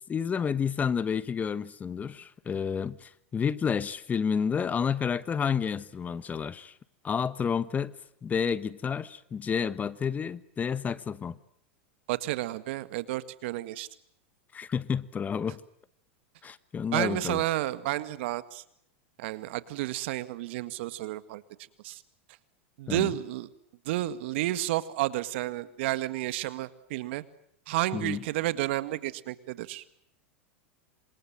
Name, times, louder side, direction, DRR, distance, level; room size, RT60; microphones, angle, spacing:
voice 1, 0.1-6.7 7.0-7.9 8.2-11.4 14.5-15.6 16.4-17.4 22.9-23.1 27.9-28.2, left 7 dB, 25° left, 17 dB, 1.2 m, -30 dB
voice 2, 12.1-13.9 16.9-18.6 19.2-21.4 21.8-22.0 22.8-23.5 23.8-27.2 27.7-29.8, right 16 dB, 65° right, 14 dB, 1.9 m, -31 dB
27.5 x 26.5 x 7.6 m, 0.70 s
hypercardioid pair, 110°, 7 cm